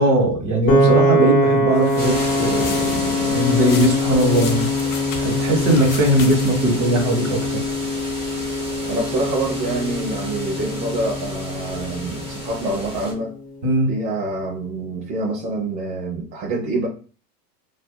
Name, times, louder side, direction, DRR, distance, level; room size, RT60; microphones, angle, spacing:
voice 1, 0.0-4.7 5.2-7.7 13.6-13.9, right 1 dB, 40° right, 1.2 m, -19 dB
Piano, 0.7-12.9, equal, 20° left, 0.4 m, -23 dB
sound 1, 1.8-6.8, left 5 dB, 60° left, 0.8 m, -35 dB
sound 2, 2.0-13.1, equal, 10° right, 0.8 m, -32 dB
voice 2, 8.9-13.3 13.9-16.9, right 2 dB, 90° right, 0.8 m, -26 dB
2.6 x 2.2 x 2.2 m
hypercardioid pair, 105°, 48 cm